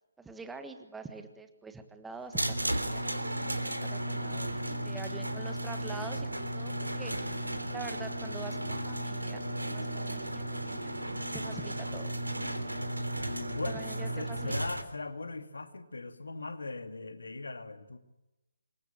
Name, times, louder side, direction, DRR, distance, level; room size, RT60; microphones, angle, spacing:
voice 1, 0.2-11.0 11.3-12.1 13.6-14.5, right 4 dB, 5° right, 8 dB, 1.6 m, -46 dB
auto garage door opener opening door quad, 2.3-14.8, right 1 dB, 75° right, 3.5 m, -34 dB
voice 2, 4.5-5.5 13.3-18.0, left 3 dB, 65° left, 8 dB, 2.4 m, -40 dB
27.0 x 24.0 x 8.8 m, 0.98 s
figure-of-eight pair, 140°, 0 cm